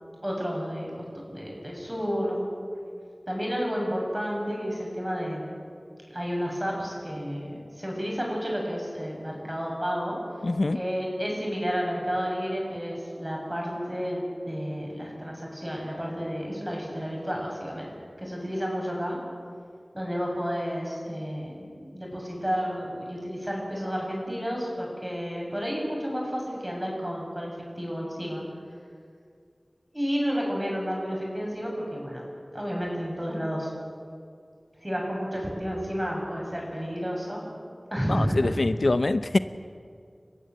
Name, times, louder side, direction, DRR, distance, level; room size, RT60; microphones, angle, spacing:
voice 1, 0.2-0.9 1.3-2.5 3.3-5.4 6.1-10.2 10.7-17.9 18.2-19.2 19.9-27.5 27.8-28.4 29.9-32.2 32.5-33.7 34.8-37.4 37.9-38.5, equal, 15° right, -2 dB, 7.3 m, -31 dB
voice 2, 10.4-10.8 38.1-39.4, left 2 dB, 75° left, 12 dB, 0.6 m, -24 dB
29.5 x 15.0 x 7.7 m, 2.3 s
wide cardioid pair, 55°, 0 cm